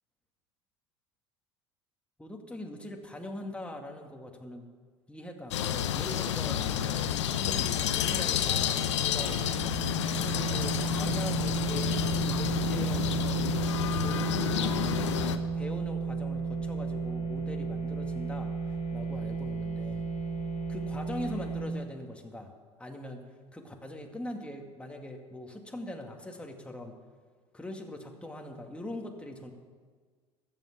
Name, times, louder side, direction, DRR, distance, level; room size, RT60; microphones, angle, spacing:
voice 1, 2.2-4.7 5.1-6.6 7.3-9.3 10.1-14.3 14.6-18.5 18.9-20.1 20.7-22.5 22.8-23.2 23.5-26.9 27.5-29.5, left 1 dB, 10° left, 2 dB, 2.2 m, -42 dB
sound 1, 5.5-15.4, left 10 dB, 85° left, 0.8 m, -30 dB
sound 2, 6.2-21.7, right 5 dB, 50° left, 2.7 m, -34 dB
14.0 x 7.6 x 8.4 m, 1.5 s
hypercardioid pair, 75°, 15 cm